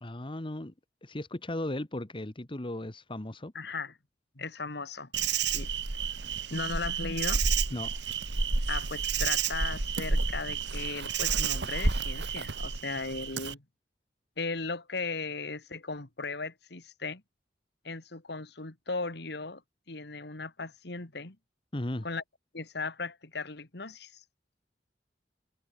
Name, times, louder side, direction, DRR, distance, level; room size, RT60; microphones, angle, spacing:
voice 1, 0.0-0.7 1.0-3.5 7.7-8.0 21.7-22.1, left 1 dB, 30° left, 1.4 m, -36 dB
voice 2, 3.5-3.9 4.4-5.1 5.4-5.7 6.5-7.5 8.7-13.6 14.4-17.2 17.8-19.6 19.9-21.4 22.0-22.2 22.5-24.2, left 3 dB, 65° left, 2.1 m, -37 dB
Insect, 5.1-13.5, right 5 dB, 75° right, 2.0 m, -30 dB
head